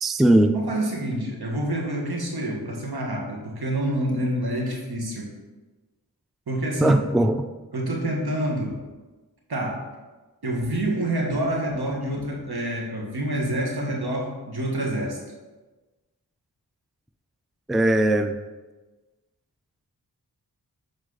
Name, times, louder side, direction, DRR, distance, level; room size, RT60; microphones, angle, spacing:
voice 1, 0.0-0.6 6.8-7.5 17.7-18.4, right 1 dB, ahead, 9 dB, 0.3 m, -19 dB
voice 2, 0.5-5.3 6.5-7.0 7.7-8.8 9.5-9.9 10.4-15.2, right 1 dB, 75° right, -1 dB, 1.6 m, -27 dB
7.8 x 4.8 x 4.0 m, 1.2 s
cardioid pair, 50°, 39 cm